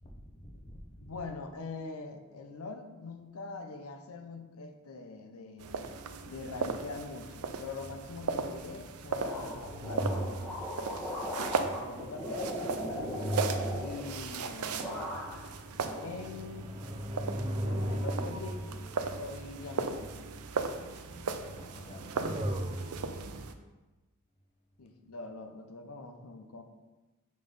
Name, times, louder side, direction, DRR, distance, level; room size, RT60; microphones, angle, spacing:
voice 1, 0.0-1.1 11.6-11.9 20.6-22.1, equal, 30° left, 2 dB, 0.8 m, -50 dB
voice 2, 1.0-5.8 6.2-10.3 11.6-14.9 16.0-16.8 17.4-18.6 19.1-20.1 24.8-26.6, left 3 dB, 70° left, 6 dB, 0.7 m, -43 dB
sound 1, 5.6-23.5, right 5 dB, 85° right, 0.5 m, -37 dB
sound 2, 7.8-8.1 9.2-10.8 12.2-14.5 15.2-20.3 21.5-23.3, equal, 20° right, 0.4 m, -38 dB
sound 3, 9.2-14.5 14.8-15.5 15.8-16.7, equal, 5° left, 1.2 m, -38 dB
5.3 x 3.9 x 5.3 m, 1.2 s
head